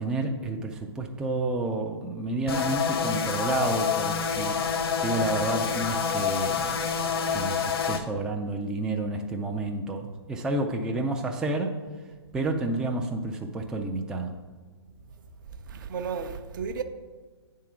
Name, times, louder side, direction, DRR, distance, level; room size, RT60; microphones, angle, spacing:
voice 1, 0.0-4.6 5.0-6.8 7.3-11.8 12.3-14.3, right 2 dB, 5° right, 0.4 m, -30 dB
sound 1, 2.5-8.0, left 6 dB, 60° left, 0.8 m, -27 dB
voice 2, 15.5-16.8, right 6 dB, 45° right, 0.7 m, -33 dB
8.9 x 3.7 x 5.6 m
figure-of-eight pair, 125°, 14 cm